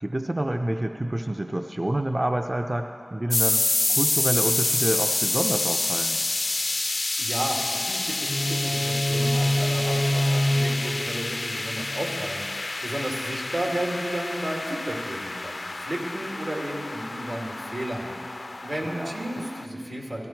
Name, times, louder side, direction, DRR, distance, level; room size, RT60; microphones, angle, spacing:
voice 1, 0.0-6.2 18.8-19.5, right 1 dB, 30° right, 4 dB, 0.5 m, -28 dB
sound 1, 3.3-19.7, left 2 dB, 55° left, 0.4 m, -28 dB
voice 2, 7.2-18.1 18.6-20.3, right 1 dB, 80° right, -2 dB, 2.3 m, -33 dB
sound 2, 8.2-12.3, left 1 dB, 65° right, 3.7 m, -26 dB
17.5 x 14.0 x 4.5 m, 2.8 s
wide cardioid pair, 65°, 0 cm